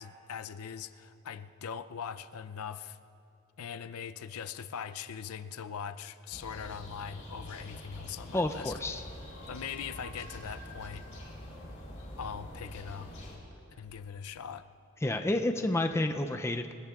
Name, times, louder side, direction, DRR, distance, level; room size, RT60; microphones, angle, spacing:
voice 1, 0.0-3.0 3.6-8.7 9.5-11.1 12.2-13.1 13.8-14.7, left 7 dB, 80° left, 12 dB, 0.5 m, -41 dB
sound 1, 6.3-13.4, equal, 30° left, 3.8 m, -45 dB
sound 2, 7.5-7.9 8.7-12.2, equal, 25° right, 4.7 m, -55 dB
voice 2, 8.3-9.0 15.0-16.7, left 1 dB, 10° left, 6 dB, 0.4 m, -30 dB
27.5 x 20.0 x 2.4 m, 2.7 s
head